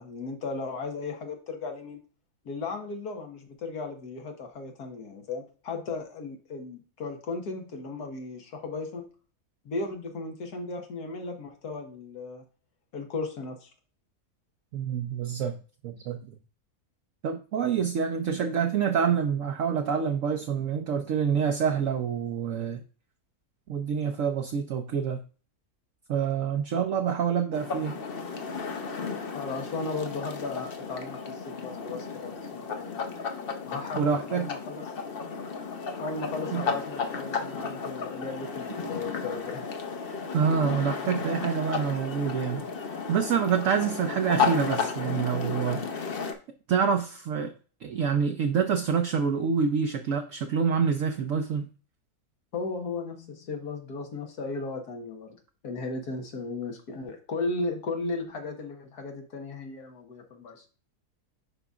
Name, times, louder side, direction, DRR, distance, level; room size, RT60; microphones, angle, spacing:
voice 1, 0.0-2.0 2.5-9.1 9.7-12.4 12.9-13.7 29.3-32.4 32.7-33.3 33.7-34.9 36.0-39.7 52.5-55.4 55.6-60.6, left 3 dB, 85° left, 3 dB, 1.8 m, -36 dB
voice 2, 14.7-15.6 15.8-16.3 17.2-22.8 23.7-25.2 26.1-28.0 34.0-34.5 36.5-36.7 40.3-42.6 43.1-45.8 46.7-47.5 47.8-51.7, right 7 dB, 65° right, 4 dB, 1.0 m, -27 dB
sound 1, 27.5-46.3, left 5 dB, 45° left, 0.9 m, -33 dB
11.0 x 4.0 x 2.4 m, 0.37 s
omnidirectional pair, 1.6 m